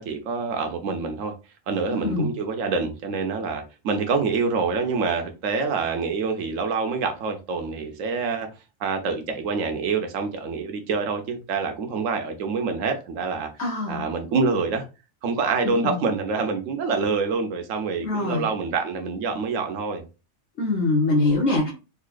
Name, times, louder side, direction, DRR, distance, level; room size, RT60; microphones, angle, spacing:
voice 1, 0.0-1.3 1.7-8.5 8.8-13.5 13.9-14.9 15.2-20.0, right 4 dB, 70° right, 1.1 m, -26 dB
voice 2, 1.9-2.3 13.6-14.1 15.6-16.0 18.0-18.5 20.6-21.7, left 2 dB, 60° left, 1.2 m, -23 dB
3.9 x 2.7 x 2.5 m
omnidirectional pair, 1.4 m